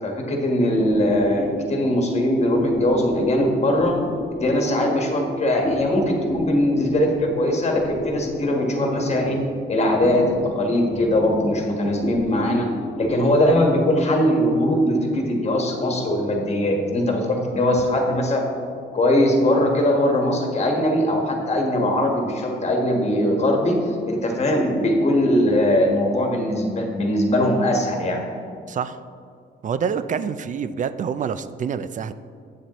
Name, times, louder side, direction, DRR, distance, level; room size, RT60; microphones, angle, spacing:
voice 1, 0.0-4.0 4.3-9.4 9.7-12.7 13.0-18.4 18.9-23.8 24.1-28.2, left 1 dB, 35° left, 1 dB, 1.5 m, -21 dB
sound 1, 0.7-19.5, left 2 dB, 15° left, 1.4 m, -32 dB
voice 2, 28.7-29.0 29.6-32.1, right 7 dB, 40° right, 13 dB, 0.4 m, -26 dB
8.4 x 7.3 x 3.1 m, 2.3 s
cardioid pair, 90°, 20 cm